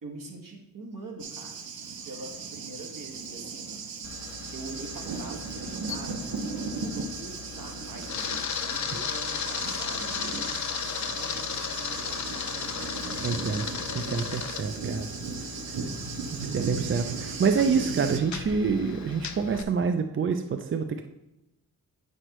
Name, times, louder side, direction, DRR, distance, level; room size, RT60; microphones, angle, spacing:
voice 1, 0.0-1.6 2.0-3.9 4.5-8.3 8.6-12.9, right 2 dB, 65° right, 1 dB, 1.5 m, -44 dB
Thunder, 1.2-18.2, right 4 dB, 85° right, 0.7 m, -37 dB
Camera, 4.0-19.6, left 7 dB, 55° left, 0.6 m, -36 dB
voice 2, 13.2-13.7 13.9-15.1 16.5-21.1, right 5 dB, 35° right, 7 dB, 0.4 m, -27 dB
8.9 x 6.3 x 3.0 m, 0.93 s
wide cardioid pair, 115°, 35 cm